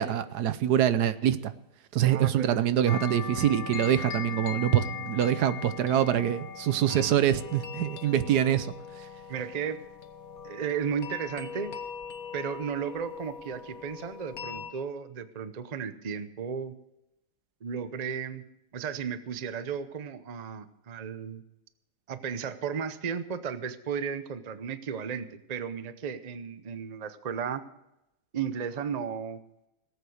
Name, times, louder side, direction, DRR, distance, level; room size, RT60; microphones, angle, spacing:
voice 1, 0.0-1.5 1.9-8.7, right 10 dB, 75° right, 13 dB, 1.3 m, -25 dB
voice 2, 2.1-2.6 3.3-3.4 9.3-9.8 10.4-11.7 12.3-16.8 17.6-18.5 18.7-21.4 22.1-27.6 28.3-29.4, right 7 dB, 40° right, 11 dB, 0.6 m, -34 dB
sound 1, 2.9-14.7, left 7 dB, 60° left, 1.7 m, -40 dB
18.5 x 8.2 x 6.5 m, 0.87 s
omnidirectional pair, 1.8 m